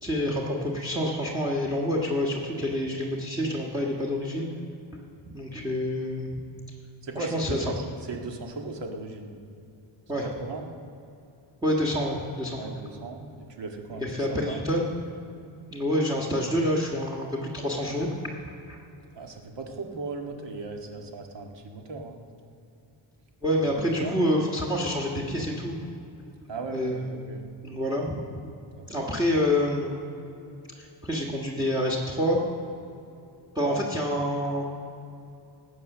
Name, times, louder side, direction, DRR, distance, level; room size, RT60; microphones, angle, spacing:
voice 1, 0.0-4.5 4.9-6.4 7.1-7.6 10.1-10.3 11.6-12.6 14.0-14.8 15.7-18.3 18.7-18.8 23.4-25.7 26.7-27.1 27.6-28.2 28.9-30.0 30.8-32.4 33.5-34.6, left 1 dB, 10° right, -2 dB, 1.5 m, -27 dB
voice 2, 7.0-9.4 10.2-10.7 12.6-14.7 19.1-22.2 23.6-23.7 24.0-24.2 26.5-27.4 28.8-29.1 33.6-33.8, right 3 dB, 60° right, 2 dB, 1.9 m, -37 dB
18.5 x 8.2 x 6.7 m, 2.7 s
wide cardioid pair, 145°, 48 cm